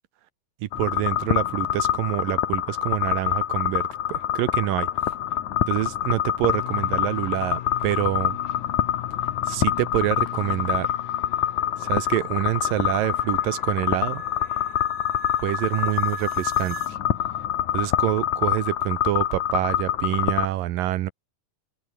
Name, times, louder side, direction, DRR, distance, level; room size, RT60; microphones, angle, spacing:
voice 1, 0.6-3.8 4.1-4.9 5.7-8.4 9.5-10.9 11.8-14.2 15.4-16.8 17.7-21.1, right 14 dB, 80° right, 2.8 m, -26 dB
sound 1, 0.7-20.5, left 11 dB, 65° left, 2.6 m, -26 dB
sound 2, 6.4-16.0, left 13 dB, 80° left, 3.0 m, -40 dB
sound 3, 10.3-16.9, right 11 dB, 60° right, 2.8 m, -44 dB
open air
omnidirectional pair, 3.9 m